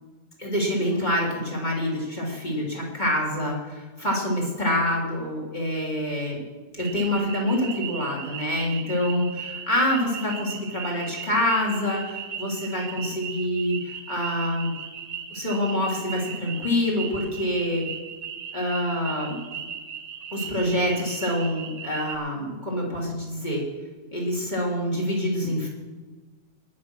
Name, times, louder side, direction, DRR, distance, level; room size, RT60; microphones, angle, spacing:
voice 1, 0.4-6.4 6.7-14.7 15.3-17.8 18.5-19.4 20.3-23.6 24.1-25.7, left 1 dB, 25° left, -2 dB, 3.5 m, -26 dB
sound 1, 6.8-22.2, right 7 dB, 60° right, 1.7 m, -37 dB
20.0 x 6.8 x 6.3 m, 1.3 s
omnidirectional pair, 1.9 m